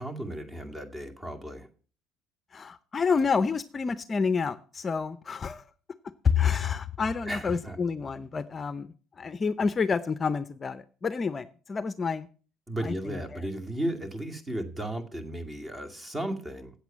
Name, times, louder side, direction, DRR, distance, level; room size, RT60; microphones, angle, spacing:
voice 1, 0.0-1.7 7.3-7.8 12.7-16.7, right 1 dB, 20° right, 6 dB, 2.2 m, -35 dB
voice 2, 2.5-5.6 6.2-12.3 12.8-13.5, left 5 dB, 30° left, 15 dB, 0.6 m, -29 dB
8.4 x 8.0 x 7.3 m, 0.39 s
supercardioid pair, 100°, 0 cm